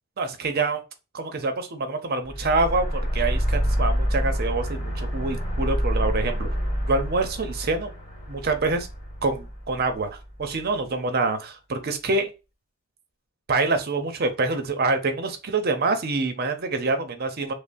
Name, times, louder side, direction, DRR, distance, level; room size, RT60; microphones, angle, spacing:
voice 1, 0.2-0.8 1.1-6.5 6.9-7.9 8.3-8.9 9.2-12.3 13.5-17.5, right 3 dB, 45° right, 8 dB, 0.6 m, -26 dB
sound 1, 2.2-10.6, equal, 30° left, 2.1 m, -27 dB
5.2 x 2.0 x 2.5 m, 0.29 s
head